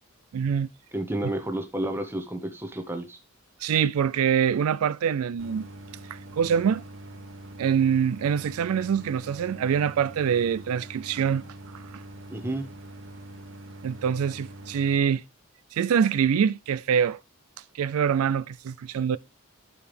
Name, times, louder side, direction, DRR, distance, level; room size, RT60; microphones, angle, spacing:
voice 1, 0.3-0.7 3.6-5.7 6.4-6.8 7.6-11.4 13.8-15.2 15.7-17.2 17.7-19.2, right 7 dB, 80° right, 0.3 m, -24 dB
voice 2, 0.9-3.2 12.3-12.7, right 1 dB, 10° right, 1.0 m, -31 dB
Idling, 5.4-15.0, right 1 dB, 60° right, 1.3 m, -44 dB
11.0 x 4.7 x 3.3 m
head